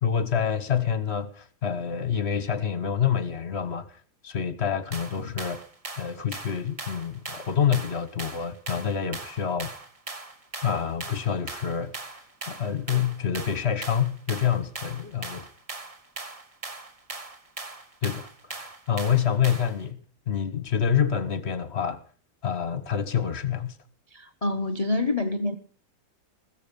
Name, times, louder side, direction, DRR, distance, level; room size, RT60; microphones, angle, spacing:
voice 1, 0.0-3.9 4.2-5.6 6.0-9.7 10.6-12.2 12.5-15.5 18.0-20.0 20.3-22.0 22.4-23.8, left 8 dB, 40° left, 1.1 m, -27 dB
sound 1, 4.9-19.8, right 3 dB, 25° right, 1.0 m, -40 dB
voice 2, 24.1-25.5, left 2 dB, 65° left, 0.3 m, -27 dB
15.5 x 14.0 x 5.3 m
omnidirectional pair, 2.0 m